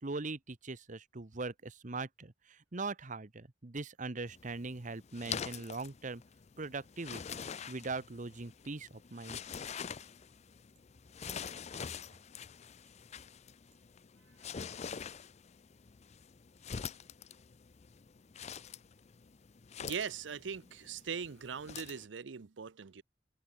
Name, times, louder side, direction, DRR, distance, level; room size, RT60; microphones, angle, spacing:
voice 1, 0.0-6.2 6.6-7.4 7.7-9.4, right 3 dB, 45° right, 1.1 m, -41 dB
sound 1, 4.3-22.0, left 7 dB, 40° left, 0.5 m, -46 dB
voice 2, 19.8-23.0, right 6 dB, 85° right, 0.6 m, -40 dB
open air
head